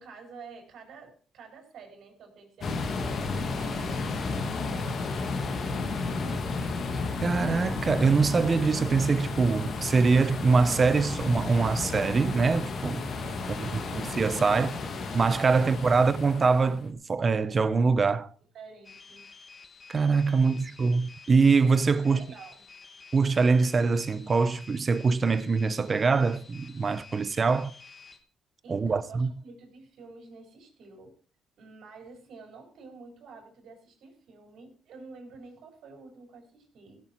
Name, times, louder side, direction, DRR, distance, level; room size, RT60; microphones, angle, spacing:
voice 1, 0.0-6.7 13.4-13.9 14.5-14.8 18.5-19.3 20.4-20.7 22.0-22.6 28.6-31.1 31.6-37.0, right 4 dB, 70° right, 4.5 m, -49 dB
sound 1, 2.6-16.8, left 3 dB, 55° left, 1.8 m, -33 dB
voice 2, 7.2-14.7 15.1-18.3 19.9-22.2 23.1-27.7 28.7-29.3, right 4 dB, 35° right, 0.8 m, -24 dB
sound 2, 18.8-28.2, left 4 dB, 30° left, 2.2 m, -51 dB
16.0 x 7.2 x 4.5 m
cardioid pair, 90°, 0 cm